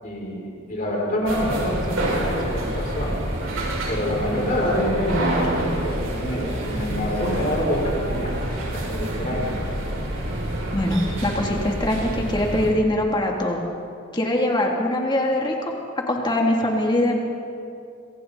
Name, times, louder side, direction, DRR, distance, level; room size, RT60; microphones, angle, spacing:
voice 1, 0.0-3.1 3.9-9.7, equal, 45° left, -4 dB, 6.8 m, -26 dB
sound 1, 1.3-12.7, right 1 dB, 85° right, 5.8 m, -27 dB
voice 2, 10.7-13.6 14.1-15.5 16.1-17.2, left 1 dB, 25° left, -1 dB, 2.8 m, -22 dB
27.0 x 24.0 x 4.2 m, 2.5 s
head